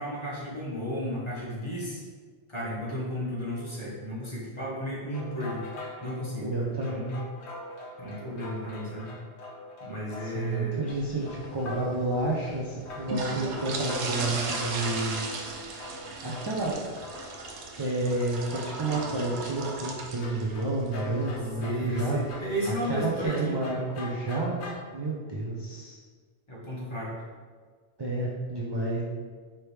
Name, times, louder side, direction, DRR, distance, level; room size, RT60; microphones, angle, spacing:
voice 1, 0.0-2.0 2.5-5.7 6.0-7.2 8.0-9.1 9.8-10.8 21.6-23.6 26.5-27.1, equal, 25° left, -6 dB, 1.0 m, -34 dB
sound 1, 5.1-12.1 12.4-12.6 12.9-17.7 18.1-19.3 20.2-24.8, left 2 dB, 75° left, 1.0 m, -43 dB
voice 2, 6.4-7.1 10.2-15.3 16.2-16.8 17.8-22.2 22.7-24.6 24.9-26.0 28.0-29.0, right 2 dB, 45° right, -4 dB, 0.3 m, -30 dB
sound 2, 10.9-23.3, right 3 dB, 90° right, 0.9 m, -38 dB
4.8 x 2.9 x 3.2 m, 1.5 s
omnidirectional pair, 1.1 m